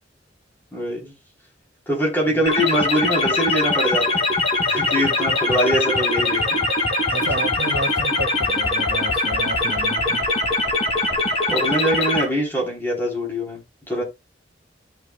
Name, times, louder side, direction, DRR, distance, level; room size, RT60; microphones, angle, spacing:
voice 1, 0.7-1.1 1.9-4.2 4.7-6.4 7.2-7.3 11.5-13.6 13.9-14.0, equal, 10° left, 3.7 m, -23 dB
sound 1, 2.5-12.2, left 2 dB, 30° left, 2.8 m, -22 dB
voice 2, 7.1-10.2, right 1 dB, 65° right, 1.9 m, -31 dB
13.0 x 5.7 x 2.3 m
head